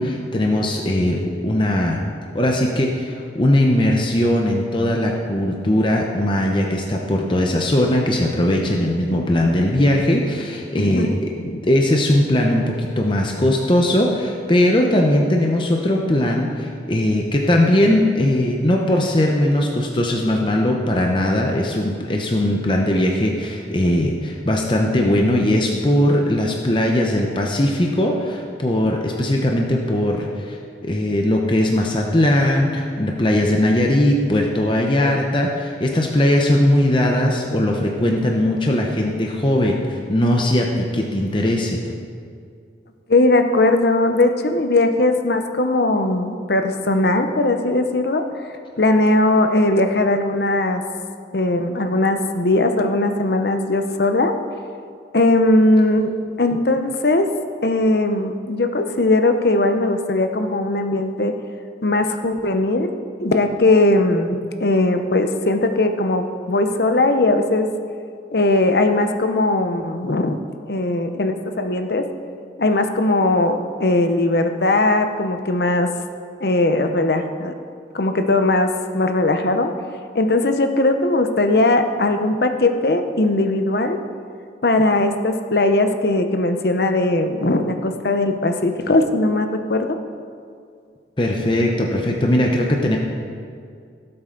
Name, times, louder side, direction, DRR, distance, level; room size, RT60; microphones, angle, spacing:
voice 1, 0.0-2.0 2.3-11.1 11.6-41.8 91.2-93.0, left 1 dB, 25° left, 0 dB, 0.8 m, -19 dB
voice 2, 10.8-11.6 35.0-35.2 43.1-48.2 48.8-50.8 51.3-54.3 55.1-56.1 56.4-57.3 57.6-61.3 61.8-62.9 63.2-67.7 68.3-70.4 70.7-72.1 72.6-75.9 76.4-77.5 77.9-79.7 80.1-84.0 84.6-90.0, left 2 dB, 60° left, 7 dB, 0.8 m, -19 dB
17.0 x 7.9 x 3.9 m, 2.3 s
head